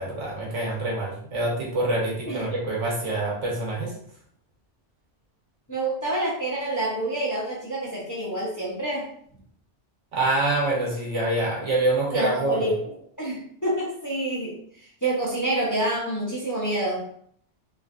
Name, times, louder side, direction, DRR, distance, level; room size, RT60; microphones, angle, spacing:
voice 1, 0.0-3.9 10.1-12.7, right 2 dB, 90° right, -3 dB, 1.3 m, -26 dB
voice 2, 5.7-9.1 12.1-12.7 13.2-14.5 15.0-17.0, right 1 dB, 25° left, -5 dB, 0.5 m, -27 dB
3.1 x 2.4 x 2.4 m, 0.64 s
omnidirectional pair, 1.2 m